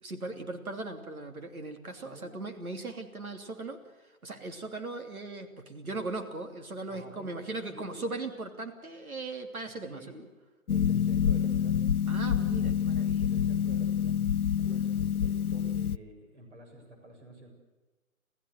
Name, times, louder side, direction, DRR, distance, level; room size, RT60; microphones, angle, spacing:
voice 1, 0.0-3.8 4.2-10.0 12.1-13.3 14.6-14.7, right 2 dB, 80° right, 6 dB, 3.1 m, -38 dB
voice 2, 2.0-2.3 6.9-8.0 9.9-10.2 10.7-11.8 13.2-14.2 14.6-17.5, right 1 dB, 55° right, 4 dB, 7.2 m, -50 dB
Harp, 10.7-16.0, left 8 dB, 85° left, 0.7 m, -27 dB
27.5 x 15.5 x 7.9 m, 1.2 s
figure-of-eight pair, 155°, 42 cm